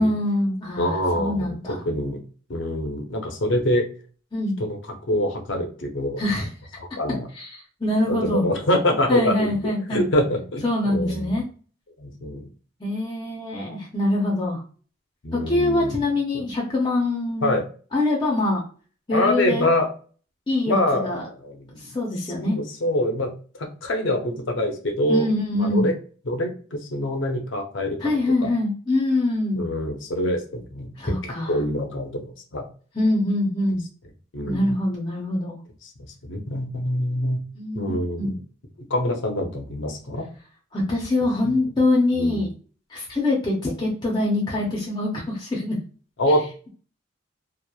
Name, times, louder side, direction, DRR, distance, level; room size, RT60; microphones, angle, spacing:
voice 1, 0.0-1.8 4.3-4.6 6.2-6.5 7.3-8.5 9.1-10.1 10.6-11.4 12.8-14.6 15.3-17.5 17.9-18.6 19.1-19.7 20.5-21.2 21.8-22.6 25.1-25.9 28.0-29.7 31.0-31.6 32.9-33.9 34.4-35.6 37.6-38.4 40.7-42.5 42.9-45.8, left 2 dB, 20° left, -2 dB, 0.5 m, -24 dB
voice 2, 0.8-2.2 2.5-3.9 4.6-4.8 5.1-6.2 6.8-7.3 8.1-11.4 12.0-12.4 15.2-16.0 17.4-17.7 19.1-19.9 20.7-21.8 22.3-23.3 23.6-25.3 25.6-25.9 26.3-28.0 28.4-28.5 29.6-30.9 31.5-32.7 34.3-34.8 36.2-37.4 37.7-38.3 38.8-40.2 41.4-41.6 42.2-42.4 46.2-46.7, left 1 dB, 70° left, 4 dB, 0.6 m, -25 dB
2.9 x 2.0 x 2.2 m, 0.39 s
head